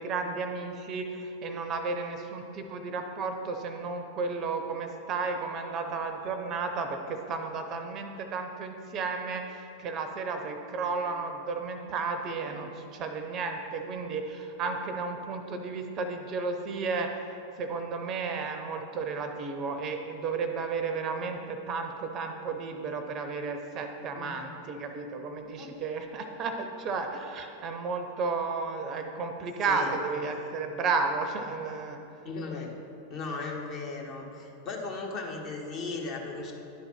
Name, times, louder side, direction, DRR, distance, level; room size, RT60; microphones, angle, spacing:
voice 1, 0.0-17.1 17.6-32.0, right 4 dB, 35° right, 6 dB, 0.6 m, -33 dB
voice 2, 32.2-32.7 33.1-36.5, left 3 dB, 35° left, -1 dB, 1.4 m, -36 dB
11.0 x 4.0 x 5.8 m, 2.8 s
figure-of-eight pair, 90°, 0 cm